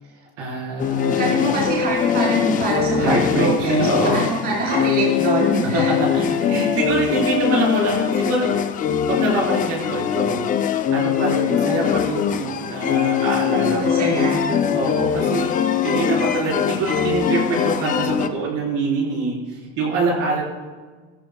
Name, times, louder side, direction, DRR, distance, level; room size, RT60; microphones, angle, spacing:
voice 1, 0.4-1.2 3.0-4.2 5.7-8.6 9.1-10.5 10.9-14.1 14.7-20.4, right 3 dB, 50° right, -3 dB, 4.4 m, -25 dB
sound 1, 0.8-18.3, left 8 dB, 25° left, 0.5 m, -22 dB
voice 2, 1.2-5.9 13.5-14.8, right 2 dB, 30° right, -5 dB, 4.2 m, -24 dB
17.5 x 14.0 x 2.3 m, 1.4 s
cardioid pair, 150°, 31 cm